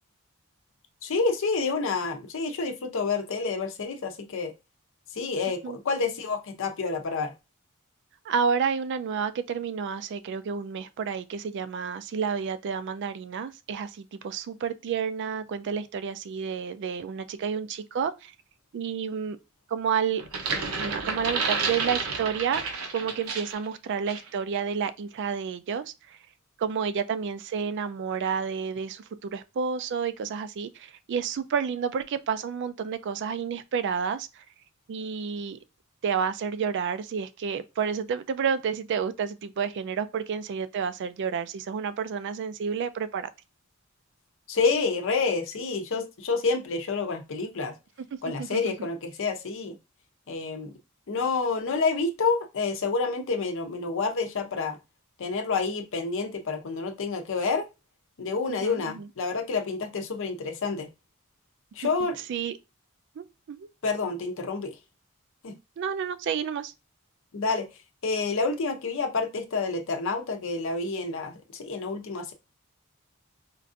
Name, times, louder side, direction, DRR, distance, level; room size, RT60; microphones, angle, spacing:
voice 1, 1.0-4.5 5.1-7.3 44.5-47.7 48.2-49.8 50.3-50.7 51.1-54.8 55.2-57.6 58.2-60.9 61.8-62.2 63.8-64.7 65.4-65.5 67.3-67.7 68.0-72.3, left 4 dB, 65° left, 0.6 m, -28 dB
voice 2, 8.2-18.3 18.7-19.4 19.7-20.2 20.8-22.6 22.9-26.2 26.6-34.4 34.9-35.6 36.0-43.3 48.2-48.7 58.5-59.1 62.3-62.6 63.2-63.7 65.8-66.7, right 6 dB, 55° right, 0.3 m, -30 dB
sound 1, 20.2-23.6 24.1-24.3, right 4 dB, 80° right, 0.8 m, -30 dB
4.5 x 2.5 x 2.5 m
head